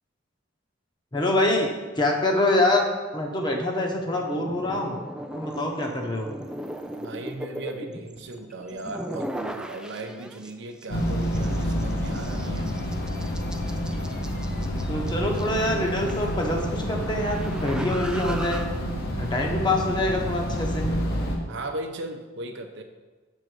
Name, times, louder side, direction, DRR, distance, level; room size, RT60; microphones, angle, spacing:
voice 1, 1.1-1.7 1.9-2.8 3.1-5.0 5.3-6.3 14.9-18.6 19.2-20.9, left 1 dB, 25° left, 1 dB, 0.9 m, -25 dB
sound 1, 4.0-10.5 10.8-18.7, right 1 dB, 5° right, 0.3 m, -39 dB
voice 2, 7.0-12.7 21.5-22.8, right 2 dB, 65° right, 5 dB, 0.7 m, -37 dB
sound 2, 10.9-21.4, equal, 55° left, 1.1 m, -28 dB
6.3 x 3.9 x 6.2 m, 1.3 s
head